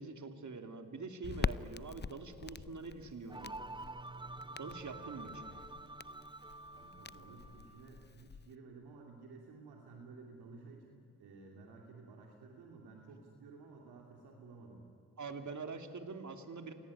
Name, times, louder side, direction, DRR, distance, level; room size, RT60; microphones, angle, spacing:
voice 1, 0.0-3.6 4.5-5.4 15.2-16.7, right 4 dB, 50° right, 6 dB, 2.9 m, -45 dB
Crackle, 1.2-8.5, left 6 dB, 25° left, 0.6 m, -44 dB
sound 1, 3.3-7.9, right 2 dB, 10° right, 0.9 m, -48 dB
voice 2, 4.8-5.6 6.6-14.9, right 4 dB, 75° right, 0 dB, 2.8 m, -54 dB
27.0 x 18.5 x 10.0 m, 2.5 s
hypercardioid pair, 40°, 38 cm